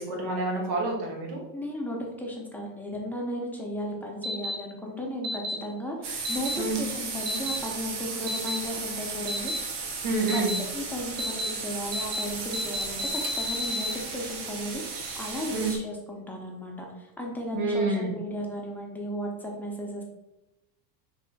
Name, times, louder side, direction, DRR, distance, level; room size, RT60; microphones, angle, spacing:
voice 1, 0.0-1.4 6.6-6.8 10.0-10.5 15.5-15.7 17.5-18.1, right 2 dB, 75° right, -1 dB, 1.5 m, -28 dB
voice 2, 1.5-9.5 10.3-10.4 10.7-20.0, left 1 dB, 5° left, -2 dB, 0.6 m, -35 dB
sound 1, 4.2-4.5 5.2-5.6 6.2-6.6 7.3-7.6 8.3-8.6 9.3-9.6 10.3-10.6 11.2-11.5 11.9-12.2 12.5-13.9, left 1 dB, 30° right, 1.0 m, -31 dB
sound 2, 6.0-15.8, right 4 dB, 55° right, 0.9 m, -35 dB
3.2 x 2.8 x 4.0 m, 0.97 s
supercardioid pair, 120°, 49 cm